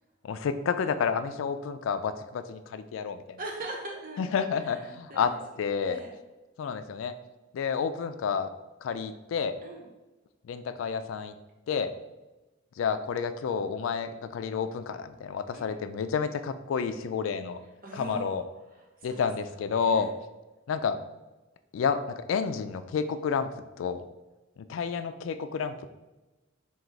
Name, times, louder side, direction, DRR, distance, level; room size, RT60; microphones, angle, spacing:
voice 1, 0.2-3.2 4.2-6.0 6.6-7.1 7.5-8.5 8.8-9.6 10.4-11.3 11.7-11.9 12.8-17.6 17.9-18.4 19.0-20.1 20.7-21.0 21.7-23.5 23.8-24.0 24.7-25.9, left 6 dB, 80° left, 10 dB, 0.3 m, -30 dB
voice 2, 3.4-4.3 4.6-5.4 5.8-6.2 9.6-9.9 15.5-15.9 17.8-18.4 18.7-19.3 19.8-20.1, right 2 dB, 45° right, 1 dB, 0.8 m, -41 dB
3.8 x 2.3 x 4.4 m, 1.1 s
head